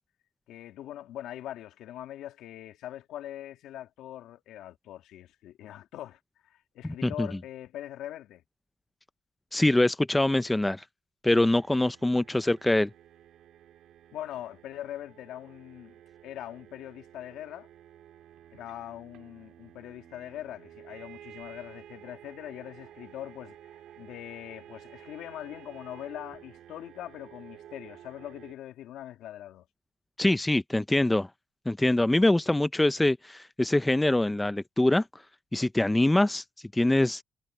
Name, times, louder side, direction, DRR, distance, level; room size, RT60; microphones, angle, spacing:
voice 1, 0.5-8.4 14.1-16.0 16.2-17.7 18.5-23.6 24.0-29.7, left 12 dB, 85° left, 2.5 m, -42 dB
voice 2, 6.8-7.3 9.5-10.8 11.2-12.9 30.2-31.3 31.7-35.2 35.5-36.4 36.7-37.2, left 1 dB, 10° left, 0.5 m, -24 dB
sound 1, 11.3-28.5, right 11 dB, 80° right, 2.1 m, -52 dB
cardioid pair, 90°, 0 cm